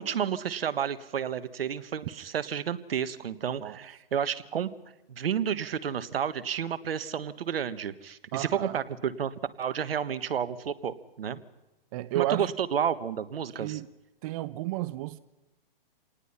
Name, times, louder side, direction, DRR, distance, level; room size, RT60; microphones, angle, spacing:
voice 1, 0.0-4.7 5.1-11.4 12.1-13.8, right 8 dB, 80° right, 1.4 m, -31 dB
voice 2, 8.3-8.8 11.9-12.5 13.6-13.9 14.2-15.2, right 16 dB, 40° right, 0.7 m, -32 dB
27.5 x 19.0 x 5.6 m
hypercardioid pair, 140°, 29 cm